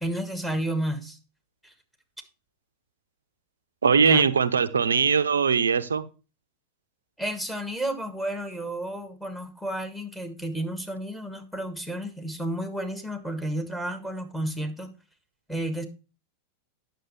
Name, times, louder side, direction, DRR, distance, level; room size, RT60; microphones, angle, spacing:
voice 1, 0.0-1.2 1.6-1.7 4.0-4.2 7.2-14.9 15.5-15.8, right 1 dB, 5° left, 1.5 m, -31 dB
voice 2, 3.8-6.0, right 6 dB, 70° right, 0.6 m, -21 dB
9.3 x 6.7 x 3.1 m
figure-of-eight pair, 90°, 0 cm